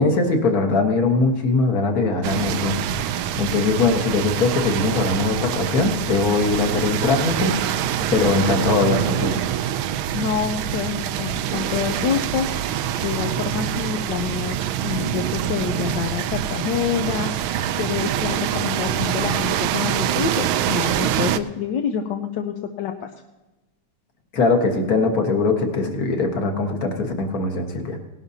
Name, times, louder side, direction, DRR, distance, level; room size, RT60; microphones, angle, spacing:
voice 1, 0.0-9.4 24.3-28.0, left 3 dB, 45° left, 4 dB, 1.7 m, -21 dB
sound 1, 2.2-21.4, right 10 dB, 80° right, 1.4 m, -25 dB
voice 2, 10.1-23.1, left 7 dB, 65° left, 4 dB, 1.2 m, -27 dB
18.5 x 12.0 x 2.8 m, 1.1 s
omnidirectional pair, 2.3 m